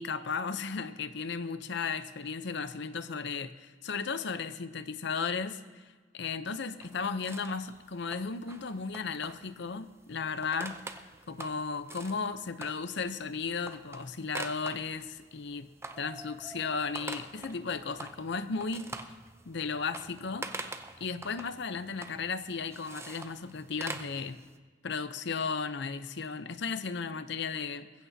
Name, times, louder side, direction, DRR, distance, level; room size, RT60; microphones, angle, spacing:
voice 1, 0.0-5.6 6.1-10.8 11.3-15.7 16.0-18.9 19.5-20.7 21.0-24.4 24.8-27.9, left 5 dB, 65° left, 11 dB, 0.7 m, -35 dB
sound 1, 6.8-24.6, right 2 dB, 15° right, 0.6 m, -46 dB
21.0 x 15.0 x 2.8 m, 1.4 s
head